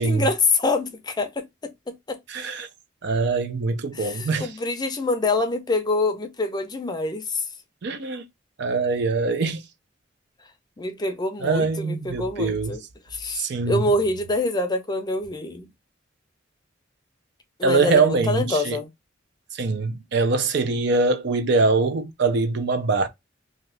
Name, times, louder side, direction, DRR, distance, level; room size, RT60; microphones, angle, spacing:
voice 1, 0.0-1.5 1.9-2.2 3.9-7.4 10.8-12.8 13.1-15.7 17.6-18.9, left 2 dB, 20° left, 0.5 m, -25 dB
voice 2, 2.3-2.7 3.0-4.5 7.8-8.2 8.6-9.6 11.4-12.8 13.3-13.9 17.6-18.8 19.5-23.1, right 3 dB, 60° right, 0.5 m, -23 dB
2.7 x 2.4 x 3.1 m
head